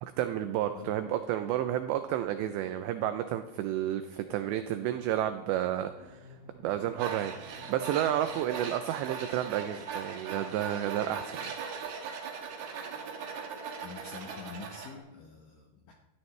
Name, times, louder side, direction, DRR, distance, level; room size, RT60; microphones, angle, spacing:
voice 1, 0.0-6.3 6.6-11.5, right 11 dB, 85° right, 9 dB, 2.5 m, -31 dB
sound 1, 1.1-8.5, left 3 dB, 40° left, 7.3 m, -54 dB
Tools, 7.0-14.9, right 6 dB, 60° right, 3.1 m, -39 dB
voice 2, 13.8-15.9, left 5 dB, 85° left, 0 dB, 1.9 m, -46 dB
19.0 x 14.0 x 3.3 m, 1.1 s
omnidirectional pair, 5.7 m